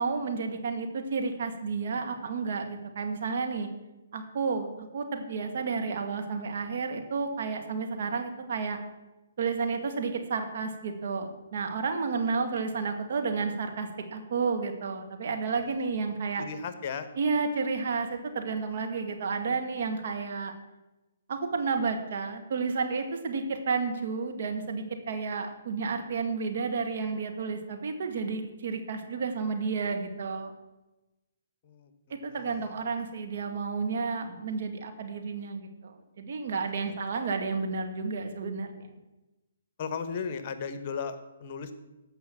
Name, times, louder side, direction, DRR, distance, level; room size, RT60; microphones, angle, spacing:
voice 1, 0.0-3.7 4.1-8.8 9.4-16.4 17.2-20.5 21.3-30.5 32.1-38.9, right 4 dB, 55° right, 4 dB, 1.9 m, -31 dB
voice 2, 16.4-17.1 31.6-32.7 39.8-41.7, left 6 dB, 40° left, 11 dB, 1.2 m, -36 dB
14.5 x 5.6 x 7.4 m, 1.1 s
figure-of-eight pair, 135°, 0 cm